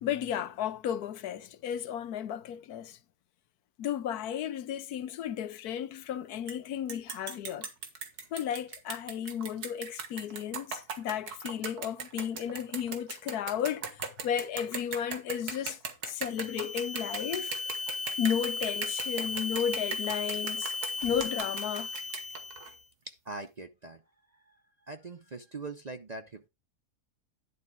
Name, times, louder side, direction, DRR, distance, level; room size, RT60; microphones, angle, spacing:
voice 1, 0.0-3.0 3.8-7.7 8.3-15.8 16.1-17.5 18.2-20.7 21.0-21.9, left 9 dB, 80° left, 1.3 m, -33 dB
sound 1, 6.5-6.6 6.9-22.7, right 5 dB, 85° right, 2.1 m, -39 dB
sound 2, 16.2-22.8, left 3 dB, 30° left, 1.1 m, -36 dB
voice 2, 23.0-24.0 24.3-24.6 24.9-26.5, right 3 dB, 40° right, 0.6 m, -42 dB
11.0 x 4.2 x 6.0 m
omnidirectional pair, 1.6 m